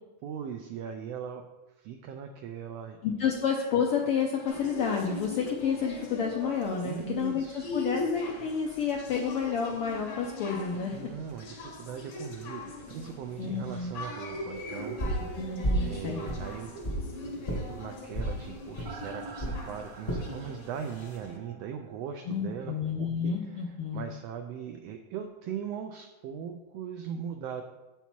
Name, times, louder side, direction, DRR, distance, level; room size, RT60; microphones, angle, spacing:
voice 1, 0.2-1.4 1.8-3.3 6.8-7.7 10.9-15.5 15.8-16.8 17.4-27.6, right 8 dB, 90° right, 5 dB, 1.4 m, -40 dB
voice 2, 3.0-11.1 13.4-13.9 15.4-16.3 22.3-24.0, left 6 dB, 75° left, 0 dB, 1.3 m, -30 dB
sound 1, 4.5-21.4, left 2 dB, 55° left, 1.2 m, -41 dB
sound 2, 14.7-22.6 22.9-23.0, right 5 dB, 70° right, 1.5 m, -47 dB
sound 3, 15.0-15.3 15.6-15.9 16.2-17.0 17.4-17.6 18.1-18.3 18.8-18.9 19.4-19.6 20.1-20.3 20.8-21.2, right 1 dB, 30° left, 0.8 m, -30 dB
8.1 x 5.7 x 4.4 m, 1.1 s
omnidirectional pair, 3.4 m